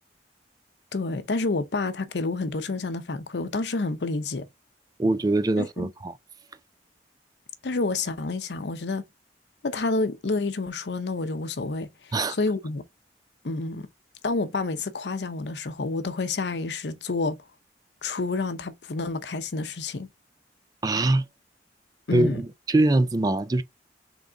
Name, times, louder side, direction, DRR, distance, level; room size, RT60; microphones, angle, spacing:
voice 1, 0.9-4.5 5.6-5.9 7.6-9.0 9.6-12.9 13.4-13.9 14.2-17.4 18.0-20.1 22.1-22.4, left 3 dB, 70° left, 0.7 m, -29 dB
voice 2, 5.0-6.1 12.1-12.4 20.8-21.3 22.1-23.6, right 2 dB, 20° right, 0.3 m, -23 dB
3.8 x 3.5 x 3.4 m
head